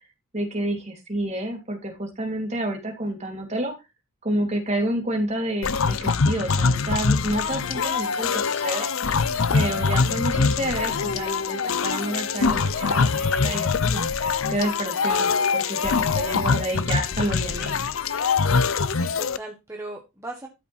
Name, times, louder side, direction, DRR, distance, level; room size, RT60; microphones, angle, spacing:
voice 1, 0.3-3.7 4.2-8.9 9.5-14.0 14.5-17.8, right 1 dB, 35° right, 3 dB, 3.1 m, -29 dB
sound 1, 5.6-19.4, left 5 dB, 75° left, 0.7 m, -23 dB
voice 2, 18.6-20.5, right 2 dB, 15° right, 0 dB, 1.5 m, -38 dB
13.0 x 5.9 x 4.3 m, 0.24 s
head